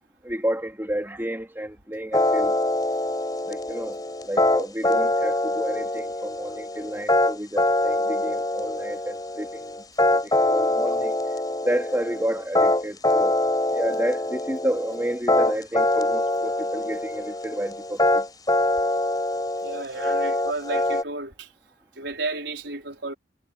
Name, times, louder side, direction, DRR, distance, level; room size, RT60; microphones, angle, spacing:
voice 1, 0.2-2.5 3.5-4.0 4.2-9.8 10.1-11.4 11.6-13.4 13.7-18.2, right 1 dB, 15° right, 2.6 m, -30 dB
sound 1, 2.1-21.0, left 1 dB, 20° left, 5.8 m, -24 dB
voice 2, 19.6-21.5 22.0-23.1, right 3 dB, 75° right, 4.7 m, -32 dB
head